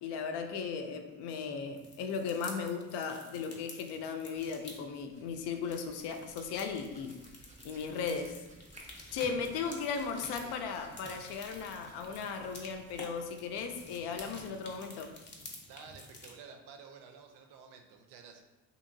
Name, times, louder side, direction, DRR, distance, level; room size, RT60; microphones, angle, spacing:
voice 1, 0.0-7.2 7.6-8.4 9.1-15.1, left 5 dB, 85° left, 6 dB, 0.5 m, -37 dB
sound 1, 1.8-4.8 5.5-16.4, left 2 dB, 30° left, 0.5 m, -51 dB
Hands, 4.2-15.5, right 2 dB, 20° right, 0.4 m, -59 dB
voice 2, 15.6-18.4, right 6 dB, 85° right, 5 dB, 0.5 m, -52 dB
2.9 x 2.8 x 2.6 m, 1.1 s
cardioid pair, 125°, 39 cm